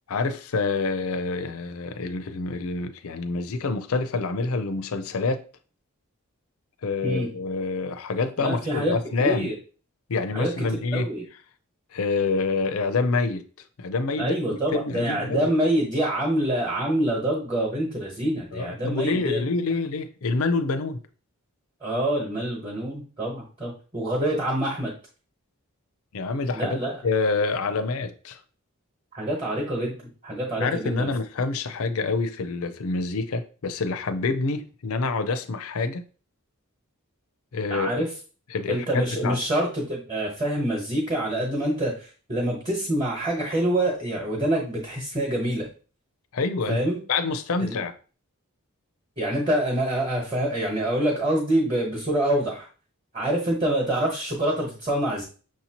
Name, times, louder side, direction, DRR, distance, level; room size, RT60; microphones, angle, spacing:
voice 1, 0.1-5.4 6.8-9.5 10.1-11.1 11.9-13.5 13.8-14.4 14.7-15.5 18.5-21.0 26.1-28.4 30.6-36.0 37.5-38.0 38.5-39.4 46.3-46.8 47.1-47.9, left 3 dB, 75° left, 0.5 m, -27 dB
voice 2, 8.4-9.6 10.3-10.7 10.9-11.2 14.2-19.4 21.8-24.9 26.5-27.0 29.1-30.0 30.2-31.1 37.7-38.1 38.7-45.7 46.7-47.0 47.6-47.8 49.2-52.7 53.1-55.2, right 1 dB, 25° right, 1.1 m, -26 dB
6.2 x 2.8 x 2.9 m
head